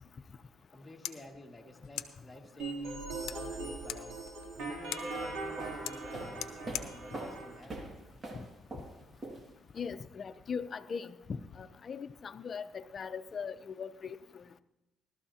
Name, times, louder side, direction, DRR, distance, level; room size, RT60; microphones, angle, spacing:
sound 1, 0.6-8.6, left 12 dB, 85° left, 0.7 m, -46 dB
voice 1, 0.7-7.8, left 1 dB, 10° left, -1 dB, 2.1 m, -51 dB
sound 2, 2.6-7.6, right 3 dB, 80° right, 3.0 m, -40 dB
sound 3, 5.1-9.8, right 2 dB, 35° right, 2.1 m, -44 dB
voice 2, 9.8-14.2, left 6 dB, 45° left, 12 dB, 0.7 m, -40 dB
17.5 x 12.5 x 2.8 m, 0.95 s
cardioid pair, 80°, 0 cm